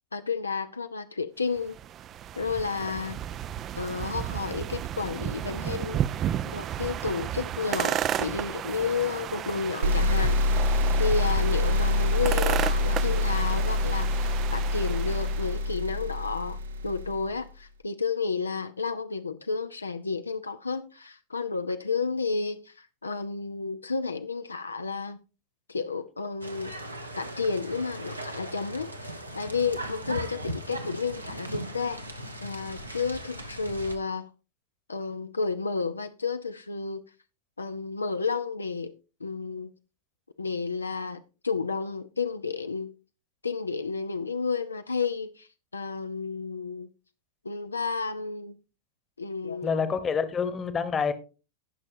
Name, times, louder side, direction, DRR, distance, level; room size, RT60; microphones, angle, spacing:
voice 1, 0.1-1.8 2.4-3.2 3.7-6.0 6.5-16.6 16.8-25.2 25.7-26.7 27.2-32.0 32.4-34.3 34.9-37.0 37.6-38.9 39.2-39.7 40.4-42.9 43.4-46.9 47.4-48.6 49.2-49.9, left 4 dB, 80° left, 0.5 m, -31 dB
sound 1, 1.6-15.6, right 10 dB, 30° right, 0.4 m, -33 dB
sound 2, 9.8-17.3, left 2 dB, 65° right, 0.7 m, -26 dB
sound 3, 26.4-33.9, right 1 dB, 85° right, 1.2 m, -38 dB
voice 2, 49.6-51.1, left 6 dB, 20° left, 1.1 m, -27 dB
18.0 x 6.3 x 2.6 m
figure-of-eight pair, 90°, 0 cm